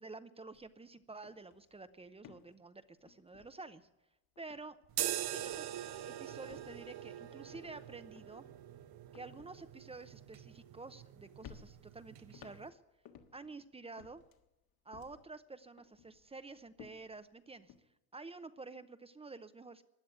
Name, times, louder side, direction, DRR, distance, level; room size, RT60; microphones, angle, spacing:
voice 1, 0.0-3.9 4.4-4.8 5.3-5.7 6.1-8.5 9.1-12.8 13.3-14.2 14.8-17.7 18.1-19.8, right 3 dB, 15° right, 11 dB, 0.7 m, -50 dB
sound 1, 0.5-0.7 1.0-4.0 4.4-5.2 5.5-5.9 6.4-11.1 11.4-13.6 14.0-15.4 15.8-17.8, left 8 dB, 60° left, 1.7 m, -59 dB
sound 2, 4.9-12.7, right 12 dB, 65° right, 1.1 m, -43 dB
16.5 x 10.5 x 8.1 m, 0.90 s
cardioid pair, 115°, 40 cm